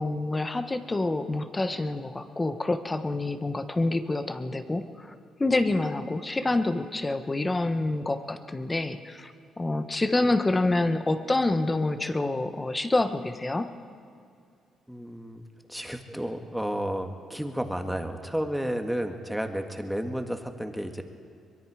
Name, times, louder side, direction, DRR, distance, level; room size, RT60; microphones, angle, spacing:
voice 1, 0.0-5.1 5.4-9.3 9.6-13.7, left 2 dB, 20° left, 9 dB, 1.3 m, -27 dB
voice 2, 14.9-15.4 15.7-21.0, equal, ahead, 5 dB, 1.8 m, -32 dB
23.5 x 22.0 x 5.0 m, 2.3 s
cardioid pair, 90°, 0 cm